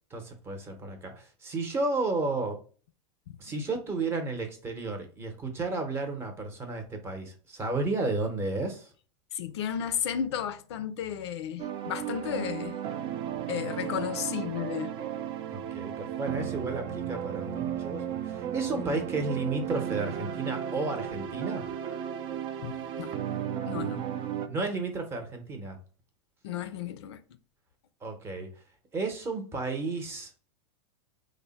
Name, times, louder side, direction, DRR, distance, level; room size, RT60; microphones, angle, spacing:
voice 1, 0.1-2.6 3.4-8.9 15.5-21.6 23.7-24.0 24.5-25.8 28.0-28.5 28.9-30.4, right 3 dB, 20° right, 0.8 m, -33 dB
voice 2, 9.3-12.8 13.5-14.9 22.3-23.1 23.7-24.0 26.4-27.2, left 9 dB, 80° left, 0.4 m, -34 dB
sound 1, 11.6-24.5, right 9 dB, 35° right, 0.4 m, -34 dB
3.2 x 2.1 x 4.0 m
supercardioid pair, 135°, 14 cm